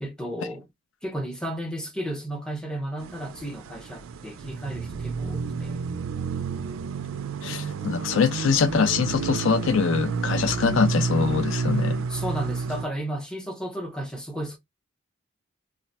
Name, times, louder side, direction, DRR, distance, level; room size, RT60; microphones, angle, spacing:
voice 1, 0.0-0.7 1.0-5.8 12.1-14.6, right 1 dB, 5° left, 0.6 m, -33 dB
sound 1, 3.0-12.8, right 5 dB, 80° right, 0.3 m, -30 dB
voice 2, 7.4-12.0, left 5 dB, 70° left, 0.4 m, -23 dB
2.5 x 2.1 x 3.9 m
head